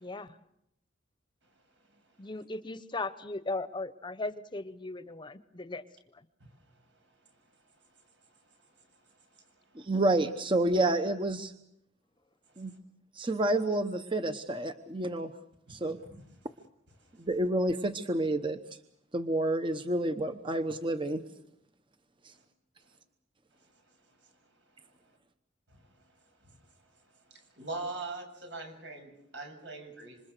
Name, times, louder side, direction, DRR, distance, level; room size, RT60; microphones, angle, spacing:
voice 1, 0.0-0.4 2.2-5.8 6.1-6.2, left 2 dB, 25° left, 13 dB, 0.9 m, -37 dB
voice 2, 9.8-11.5 12.6-12.7 13.1-15.3 15.7-16.0 17.2-18.6 19.1-21.2 22.2-22.3, right 1 dB, 30° right, 8 dB, 1.0 m, -29 dB
voice 3, 27.3-30.2, right 3 dB, 75° right, 5 dB, 7.3 m, -42 dB
27.0 x 26.0 x 6.7 m, 0.79 s
head